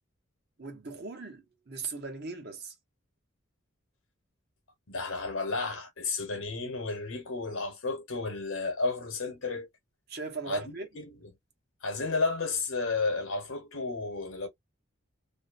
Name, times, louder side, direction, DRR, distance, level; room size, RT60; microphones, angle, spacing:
voice 1, 0.6-2.7 10.1-10.9, right 5 dB, 50° right, 1.0 m, -38 dB
voice 2, 4.9-9.7 10.5-11.3 11.8-14.5, left 3 dB, 75° left, 1.0 m, -32 dB
2.6 x 2.1 x 2.5 m
head